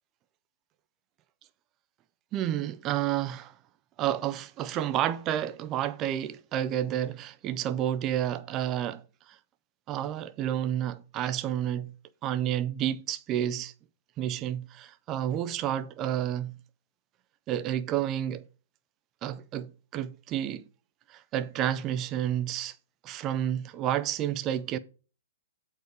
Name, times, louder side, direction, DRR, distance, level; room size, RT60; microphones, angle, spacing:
voice 1, 2.3-3.5 4.0-9.0 9.3-9.4 9.9-11.9 12.2-13.7 14.2-16.5 17.5-18.4 19.2-20.6 21.1-22.7 23.0-24.8, right 11 dB, 25° right, 0.4 m, -30 dB
8.1 x 4.6 x 4.8 m
hypercardioid pair, 140°, 0 cm